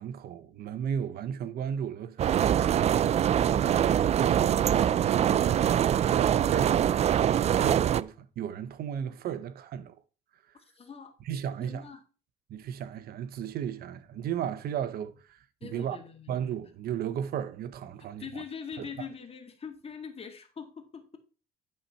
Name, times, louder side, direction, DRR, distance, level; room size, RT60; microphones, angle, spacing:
voice 1, 0.0-3.2 3.6-10.0 11.2-11.9 12.5-16.0 16.3-18.4 18.8-19.1, right 9 dB, 65° right, 0.9 m, -35 dB
sound 1, 2.2-8.0, right 10 dB, 40° right, 0.4 m, -24 dB
voice 2, 10.7-11.1 11.6-12.0 15.6-16.3 18.2-21.2, left 6 dB, 35° left, 2.0 m, -42 dB
11.5 x 4.3 x 5.6 m
cardioid pair, 110°, 17 cm